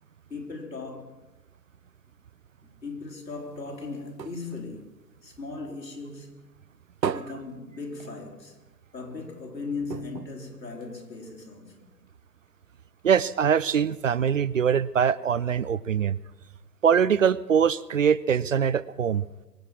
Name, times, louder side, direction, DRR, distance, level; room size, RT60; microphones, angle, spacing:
voice 1, 0.3-1.2 2.6-5.0 5.2-6.5 7.1-8.7 8.9-11.9, left 3 dB, 80° left, 3.6 m, -38 dB
sound 1, 3.3-5.9 6.3-8.5 8.9-9.0 9.3-9.4 9.9-11.4 12.0-12.1, right 7 dB, 90° right, 0.7 m, -37 dB
voice 2, 13.0-16.2 16.8-19.2, right 7 dB, 50° right, 0.5 m, -23 dB
24.0 x 8.1 x 6.1 m
figure-of-eight pair, 130°, 50 cm